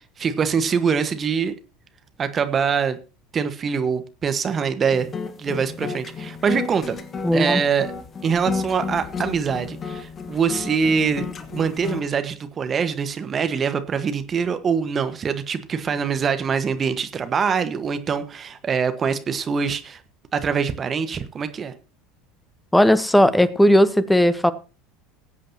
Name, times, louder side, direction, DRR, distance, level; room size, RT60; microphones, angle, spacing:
voice 1, 0.2-1.5 2.2-3.0 3.3-5.1 5.4-7.0 7.3-7.9 8.2-11.2 11.5-20.0 20.3-21.7, right 6 dB, 35° right, 1.4 m, -24 dB
sound 1, 4.9-12.0, left 5 dB, 30° left, 1.5 m, -32 dB
voice 2, 7.2-7.6 22.7-24.5, equal, 5° left, 1.0 m, -16 dB
20.0 x 8.4 x 2.9 m
hypercardioid pair, 75°, 0 cm